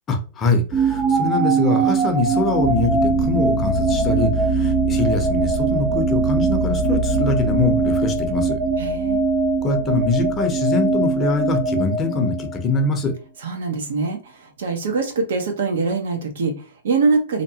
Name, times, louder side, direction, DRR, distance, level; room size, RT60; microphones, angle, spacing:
voice 1, 0.1-8.6 9.6-13.1, left 3 dB, 20° left, 0.6 m, -23 dB
sound 1, 0.7-12.8, right 4 dB, 25° right, 0.4 m, -22 dB
sound 2, 2.6-10.5, equal, 50° left, 0.8 m, -26 dB
voice 2, 8.8-9.2 13.4-17.4, right 4 dB, 80° right, 0.8 m, -23 dB
2.8 x 2.2 x 2.7 m
hypercardioid pair, 145°, 0 cm